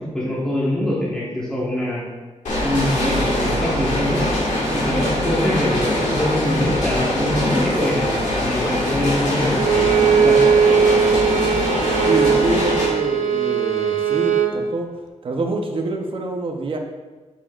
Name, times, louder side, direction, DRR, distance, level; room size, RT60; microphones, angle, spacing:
voice 1, 0.0-2.0 2.6-4.3 4.6-10.4, left 1 dB, 5° left, -6 dB, 1.3 m, -24 dB
sound 1, 2.5-12.9, left 1 dB, 80° left, 1.9 m, -22 dB
Bowed string instrument, 9.5-14.6, right 7 dB, 85° right, 0.7 m, -19 dB
voice 2, 12.0-14.9 15.2-16.8, right 2 dB, 45° right, 2 dB, 0.8 m, -25 dB
7.2 x 6.9 x 2.5 m, 1.3 s
wide cardioid pair, 160°, 12 cm